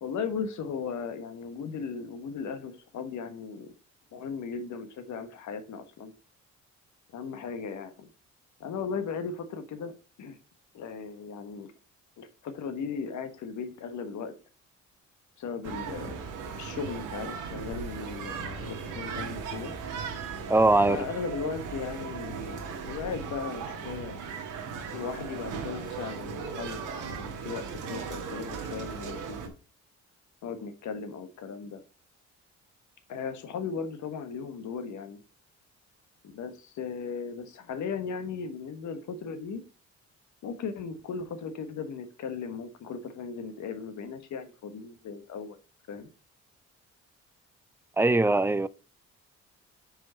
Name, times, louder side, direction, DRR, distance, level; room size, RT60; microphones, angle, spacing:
voice 1, 0.0-3.7 4.1-6.1 7.1-8.1 8.6-9.9 10.2-10.4 10.7-11.7 12.2-14.3 15.4-16.2 16.6-19.7 20.9-24.2 24.9-29.5 30.4-31.8 33.1-35.2 36.2-39.6 40.4-45.6 45.9-46.1, left 6 dB, 70° left, 1.3 m, -37 dB
sound 1, 15.6-29.5, right 6 dB, 90° right, 1.5 m, -37 dB
voice 2, 20.5-21.0 48.0-48.7, right 2 dB, 10° right, 0.3 m, -21 dB
5.7 x 5.2 x 4.3 m
cardioid pair, 90°, 30 cm